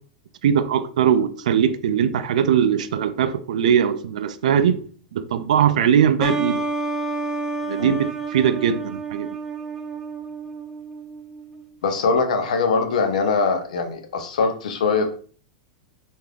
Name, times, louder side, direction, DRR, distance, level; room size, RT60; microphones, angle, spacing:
voice 1, 0.4-4.8 5.1-6.6 7.6-9.4, right 8 dB, 80° right, 0.3 m, -20 dB
sound 1, 6.2-11.7, right 3 dB, 15° right, 0.4 m, -29 dB
voice 2, 11.8-15.1, left 4 dB, 80° left, 0.6 m, -22 dB
3.2 x 2.5 x 2.3 m
hypercardioid pair, 125°, 4 cm